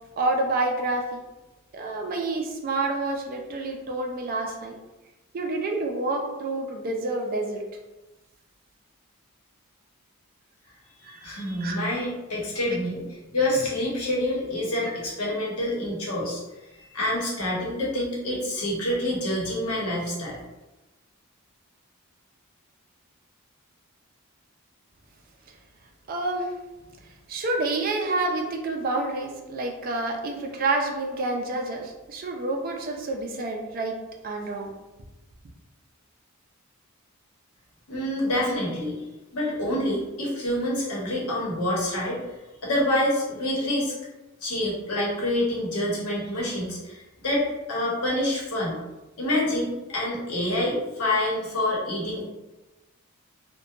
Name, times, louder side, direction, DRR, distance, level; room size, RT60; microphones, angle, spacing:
voice 1, 0.2-1.2 1.7-4.7 5.3-7.6 11.0-11.8 14.8-14.9 26.1-26.5 27.3-34.0 34.2-34.7, right 2 dB, 40° right, 2 dB, 0.3 m, -28 dB
voice 2, 11.2-13.0 13.3-16.4 16.7-20.4 37.9-39.0 39.3-42.2 42.6-43.9 44.4-46.9 47.2-48.8 49.2-52.2, left 1 dB, 90° left, -4 dB, 0.9 m, -27 dB
2.8 x 2.2 x 2.4 m, 1.1 s
head